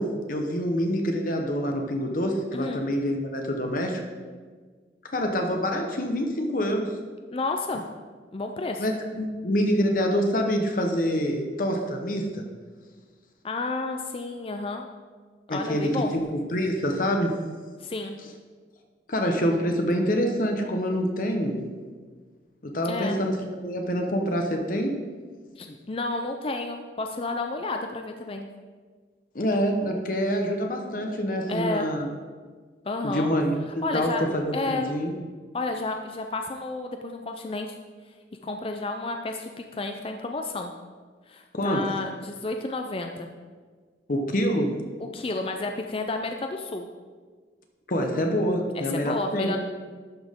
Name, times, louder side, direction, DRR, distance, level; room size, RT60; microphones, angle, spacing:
voice 1, 0.0-4.0 5.1-6.9 8.8-12.4 15.5-17.3 19.1-21.6 22.6-25.0 29.3-32.1 33.0-35.1 41.5-41.9 44.1-44.8 47.9-49.5, equal, 50° left, 3 dB, 0.9 m, -26 dB
voice 2, 2.5-2.8 7.3-7.8 8.3-8.9 13.4-14.9 15.5-16.1 17.8-18.2 22.8-23.2 25.6-28.5 31.5-31.9 32.8-33.3 33.8-34.3 34.5-34.9 35.5-37.8 38.4-40.7 41.3-43.3 45.1-46.9 48.7-49.6, left 3 dB, 30° left, 4 dB, 0.4 m, -31 dB
11.5 x 6.0 x 3.6 m, 1.5 s
head